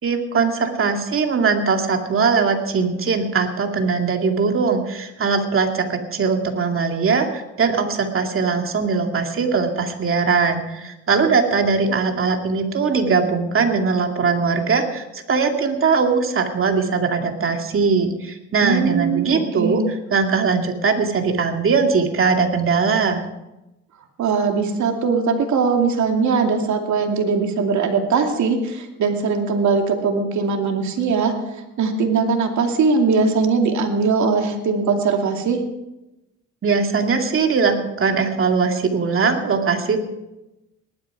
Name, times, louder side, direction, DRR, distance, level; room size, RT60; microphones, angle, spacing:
voice 1, 0.0-19.8 20.1-23.2 36.6-40.0, right 5 dB, 45° right, 3 dB, 2.4 m, -20 dB
voice 2, 18.6-19.9 24.2-31.3 31.8-35.6, right 5 dB, 70° right, 3 dB, 2.6 m, -20 dB
18.5 x 12.0 x 4.9 m, 0.95 s
cardioid pair, 90°, 30 cm